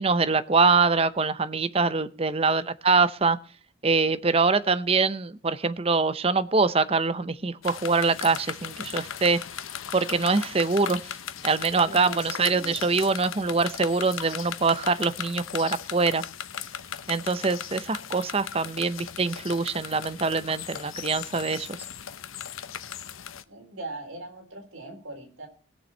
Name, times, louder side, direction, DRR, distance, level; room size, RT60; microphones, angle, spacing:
voice 1, 0.0-3.4 3.8-9.4 9.9-11.2 11.4-16.2 17.1-21.8, right 4 dB, 30° right, 13 dB, 0.6 m, -24 dB
sound 1, 7.6-23.4, left 9 dB, 85° left, 0.9 m, -38 dB
voice 2, 11.8-12.8 23.5-25.5, right 2 dB, 85° right, 3 dB, 4.1 m, -40 dB
19.5 x 7.0 x 4.4 m, 0.39 s
head